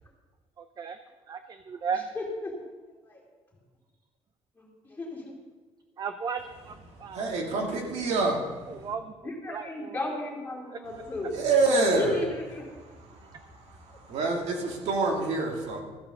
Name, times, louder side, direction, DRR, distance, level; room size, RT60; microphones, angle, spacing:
voice 1, 0.6-1.0 1.3-2.0 6.0-7.6 8.1-8.2 8.7-9.9, right 6 dB, 35° right, 9 dB, 0.6 m, -36 dB
voice 2, 1.9-2.5 3.0-3.2 4.6-5.2 9.2-11.3 12.0-12.6, left 2 dB, 15° left, -4 dB, 3.5 m, -34 dB
voice 3, 7.1-8.9 11.3-12.1 13.3-13.4 13.8-15.8, right 3 dB, 80° right, 0 dB, 2.5 m, -27 dB
14.0 x 7.2 x 6.6 m, 1.3 s
cardioid pair, 145°, 11 cm